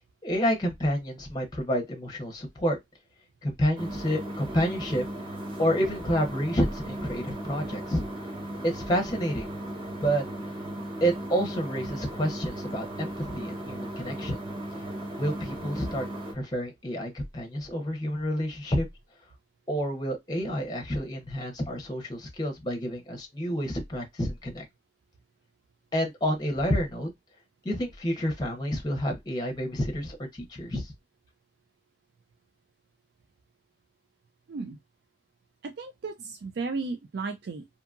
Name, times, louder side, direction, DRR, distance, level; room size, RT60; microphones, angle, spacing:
voice 1, 0.2-2.8 3.4-5.0 5.6-8.0 8.6-9.5 10.0-10.2 11.0-14.4 15.2-16.1 16.3-18.9 19.7-24.6 25.9-27.1 27.6-30.9, equal, 25° left, 0.7 m, -29 dB
sound 1, 3.8-16.3, right 1 dB, 30° right, 0.9 m, -37 dB
voice 2, 35.6-37.8, right 4 dB, 60° right, 0.4 m, -35 dB
2.7 x 2.5 x 2.3 m
head